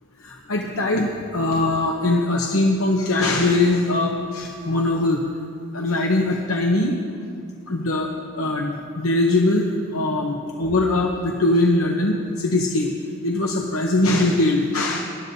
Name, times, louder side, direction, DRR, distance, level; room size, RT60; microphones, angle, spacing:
voice 1, 0.2-1.1 1.3-5.2 5.7-7.0 7.7-8.1 8.4-12.9 13.2-15.0, left 2 dB, 85° left, 0 dB, 0.9 m, -21 dB
22.0 x 12.0 x 2.7 m, 2.3 s
head